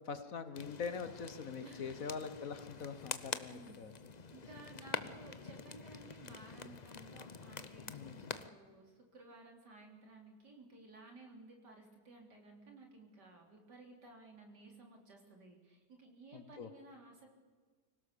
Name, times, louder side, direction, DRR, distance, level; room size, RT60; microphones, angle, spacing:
voice 1, 0.0-3.9 7.9-8.3 16.3-16.7, left 6 dB, 55° left, 11 dB, 1.4 m, -43 dB
sound 1, 0.5-8.5, left 5 dB, 40° left, 0.6 m, -46 dB
voice 2, 1.6-2.1 3.5-3.8 4.3-17.3, right 2 dB, 75° right, 2 dB, 4.1 m, -56 dB
25.0 x 17.0 x 6.8 m, 1.5 s
omnidirectional pair, 1.8 m